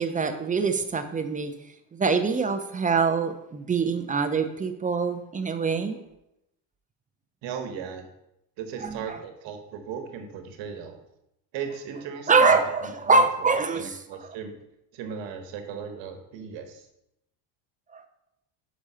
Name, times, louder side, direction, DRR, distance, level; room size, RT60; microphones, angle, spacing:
voice 1, 0.0-1.5 1.9-6.0 8.8-9.2 12.3-13.9 17.9-18.0, right 4 dB, 15° right, 8 dB, 0.5 m, -24 dB
voice 2, 7.4-8.1 8.6-11.0 11.5-12.6 12.8-13.5 13.7-14.5 14.9-16.9, right 6 dB, 65° right, 6 dB, 1.2 m, -37 dB
6.0 x 5.1 x 5.6 m, 0.85 s
cardioid pair, 120°, 48 cm